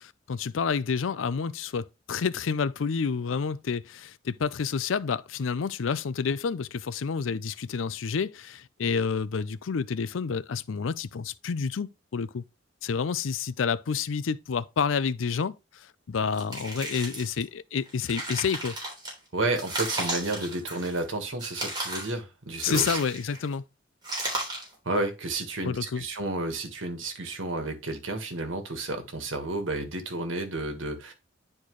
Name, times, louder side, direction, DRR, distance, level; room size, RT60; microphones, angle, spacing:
voice 1, 0.0-12.4 12.8-18.8 22.6-23.6 25.7-26.0, left 5 dB, 85° left, 0.5 m, -29 dB
sound 1, 16.3-17.4 17.9-19.1 19.6-21.0 21.4-22.1 22.6-23.5 24.0-24.7, right 1 dB, 20° right, 3.4 m, -34 dB
voice 2, 19.3-23.0 24.8-31.1, right 2 dB, 80° right, 1.6 m, -31 dB
10.0 x 4.3 x 3.1 m
head